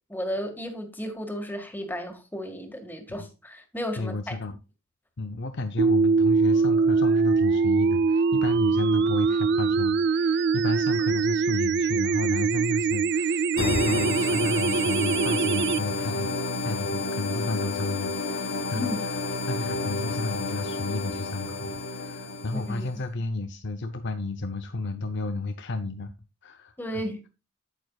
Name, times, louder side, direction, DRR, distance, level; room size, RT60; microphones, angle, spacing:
voice 1, 0.1-4.3 18.7-19.0 22.5-22.9 26.8-27.2, equal, 10° left, 1.8 m, -34 dB
voice 2, 4.0-4.6 5.2-19.2 19.5-26.1 26.4-27.0, left 2 dB, 60° left, 0.7 m, -32 dB
sound 1, 5.8-15.8, right 5 dB, 55° right, 0.4 m, -23 dB
sound 2, 13.6-22.9, left 3 dB, 75° left, 1.6 m, -30 dB
9.0 x 8.6 x 2.3 m
head